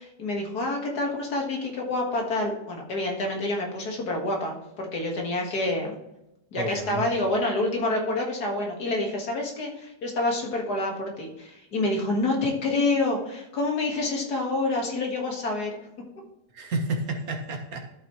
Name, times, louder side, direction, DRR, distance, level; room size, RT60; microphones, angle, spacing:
voice 1, 0.0-6.0 6.5-15.8, left 2 dB, 85° left, 0 dB, 2.3 m, -27 dB
voice 2, 6.5-7.2 16.5-17.9, right 2 dB, 70° right, 4 dB, 1.7 m, -31 dB
12.5 x 6.0 x 3.1 m, 0.89 s
omnidirectional pair, 1.6 m